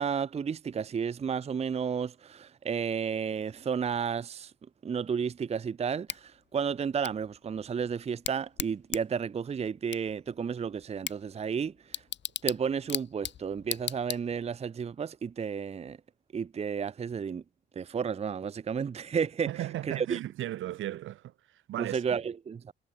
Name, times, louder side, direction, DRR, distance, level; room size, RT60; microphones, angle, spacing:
voice 1, 0.0-4.5 4.8-12.0 12.4-16.0 16.3-17.4 17.8-19.5 19.8-20.2 21.8-22.7, right 6 dB, 30° right, 0.6 m, -32 dB
Bicycle / Tick, 6.1-14.6, left 10 dB, 65° left, 4.1 m, -40 dB
voice 2, 19.5-22.0, right 13 dB, 80° right, 2.1 m, -36 dB
cardioid pair, 90°, 20 cm